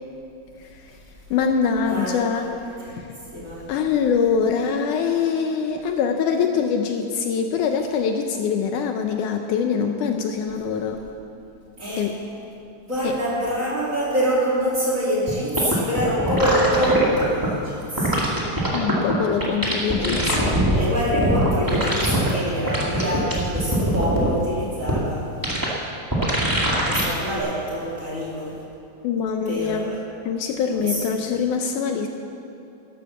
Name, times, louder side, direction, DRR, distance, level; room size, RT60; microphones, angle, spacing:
voice 1, 1.3-2.5 2.9-3.1 3.7-11.0 11.9-12.2 13.0-13.1 18.7-20.4 29.0-29.9 30.3-32.1, left 6 dB, 75° left, 4 dB, 2.1 m, -23 dB
voice 2, 1.9-2.5 2.9-3.0 3.3-3.6 11.8-12.1 12.9-18.4 20.0-20.4 20.7-25.2 26.9-28.6 29.5-30.0 30.7-31.0, equal, 25° right, -5 dB, 2.7 m, -25 dB
sound 1, 15.3-15.4 15.6-17.5 18.0-19.1 19.4-20.8 21.1-22.3 22.7-24.3 24.9-25.0 25.4-25.7 26.1-27.0 27.4-27.5, right 1 dB, 10° right, 1.3 m, -22 dB
12.0 x 11.5 x 7.0 m, 2.8 s
omnidirectional pair, 3.9 m